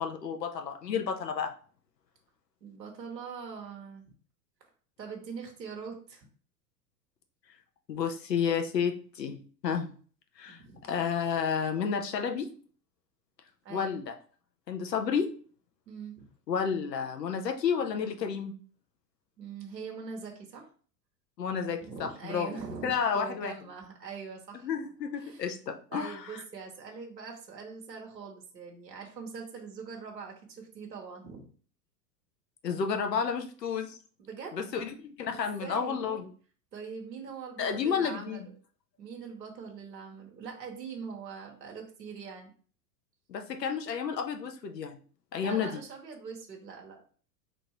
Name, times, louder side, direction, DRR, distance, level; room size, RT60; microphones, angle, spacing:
voice 1, 0.0-1.5 7.9-9.4 9.6-9.9 10.4-10.6 10.9-12.5 13.7-14.1 14.7-15.3 16.5-18.5 21.4-23.5 24.6-26.4 32.6-34.0 34.5-36.3 37.6-38.5 43.3-45.0 45.3-45.8, left 6 dB, 80° left, 5 dB, 0.8 m, -31 dB
voice 2, 2.6-4.1 5.0-6.2 10.5-10.9 13.6-14.0 15.9-16.3 19.4-20.7 21.8-24.7 25.2-25.5 25.9-31.5 34.2-34.6 35.3-36.0 36.7-38.5 39.0-42.5 45.4-47.0, right 5 dB, 85° right, 0 dB, 1.1 m, -43 dB
3.8 x 2.6 x 4.4 m, 0.43 s
figure-of-eight pair, 90°, 49 cm